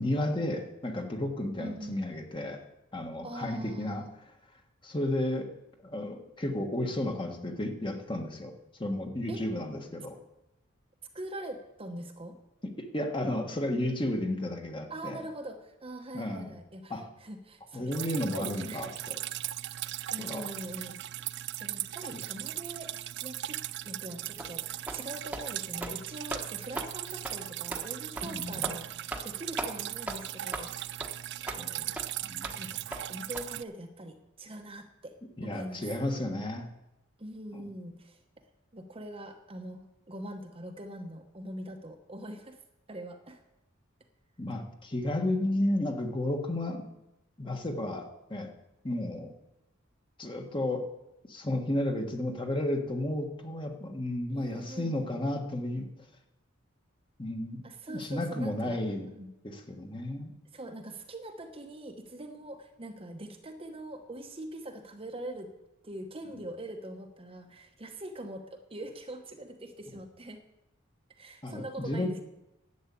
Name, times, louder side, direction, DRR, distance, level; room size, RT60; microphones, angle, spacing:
voice 1, 0.0-2.6 2.9-4.0 4.8-5.5 5.8-8.5 8.8-10.2 12.6-15.2 16.1-16.5 16.9-17.1 17.7-19.1 20.2-20.5 22.1-22.2 28.2-28.7 31.6-31.9 32.2-32.6 35.4-36.7 37.5-37.6 44.4-46.9 47.4-48.5 48.8-49.3 50.2-50.9 51.3-55.9 57.2-57.6 57.9-59.1 59.4-60.3 71.4-72.1, left 1 dB, 25° left, 4 dB, 1.5 m, -32 dB
voice 2, 1.6-2.1 3.2-4.1 9.3-9.4 11.1-12.4 14.9-18.9 20.1-21.0 21.6-22.9 23.2-30.7 31.4-31.6 32.6-32.8 33.1-35.1 35.4-35.9 37.2-38.2 38.7-42.6 42.9-43.4 54.3-54.9 57.6-58.8 59.1-59.3 60.5-65.5 65.8-70.4 71.2-72.2, right 1 dB, 25° right, 5 dB, 1.0 m, -43 dB
Drip, 17.9-33.6, right 14 dB, 55° right, 0.4 m, -38 dB
sound 1, 24.4-24.5 24.9-25.0 25.3-25.5 25.8-26.0 26.3-26.4 26.8-26.9 27.2-27.4 27.7-27.8 28.2-28.3 28.6-28.8 29.1-29.3 29.6-29.7 30.1-30.2 30.5-30.7 31.0-31.1 31.5-31.6 32.0-32.1 32.4-32.6 32.9-33.0 33.3-33.4, right 1 dB, 5° right, 1.2 m, -37 dB
11.5 x 8.1 x 8.4 m, 0.92 s
head